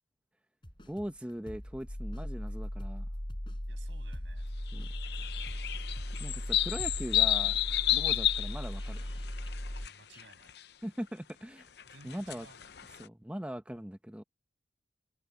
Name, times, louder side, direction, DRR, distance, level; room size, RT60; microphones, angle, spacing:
sound 1, 0.6-9.8 10.1-10.2, equal, 25° left, 6.8 m, -51 dB
voice 1, 0.9-3.1 4.7-4.9 6.2-9.0 10.8-11.7 12.0-12.5 13.0-14.2, equal, 5° right, 0.9 m, -40 dB
sound 2, 1.9-9.9, equal, 40° left, 2.3 m, -38 dB
voice 2, 3.7-4.4 8.0-8.3 9.8-10.5 11.8-12.9, right 3 dB, 90° right, 6.8 m, -57 dB
sound 3, 4.7-9.9 10.2-10.6 11.8-13.0, left 13 dB, 60° left, 0.7 m, -31 dB
head